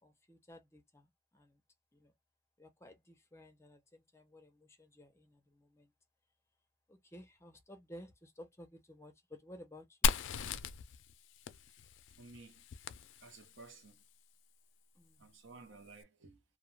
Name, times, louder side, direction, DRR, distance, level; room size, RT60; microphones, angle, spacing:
voice 1, 0.0-1.6 1.9-2.1 2.6-5.9 6.9-10.1 14.9-15.3, left 1 dB, 15° left, 0.5 m, -55 dB
Fire, 10.0-13.7, left 5 dB, 80° left, 0.3 m, -37 dB
voice 2, 12.1-12.7 13.2-14.1 15.2-16.4, right 3 dB, 80° right, 0.7 m, -55 dB
2.2 x 2.2 x 3.1 m
head